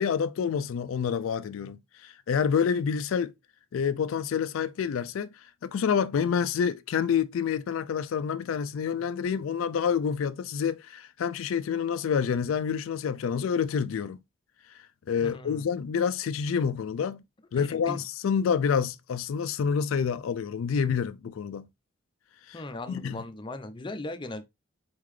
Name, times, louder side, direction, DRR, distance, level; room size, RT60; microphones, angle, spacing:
voice 1, 0.0-3.3 3.7-5.3 5.6-14.2 15.1-17.2 17.5-21.7 22.5-22.6 22.9-23.2, left 7 dB, 85° left, 0.4 m, -28 dB
voice 2, 15.2-15.6 17.6-18.0 22.5-24.4, left 2 dB, 25° left, 0.5 m, -38 dB
4.2 x 3.8 x 3.1 m
head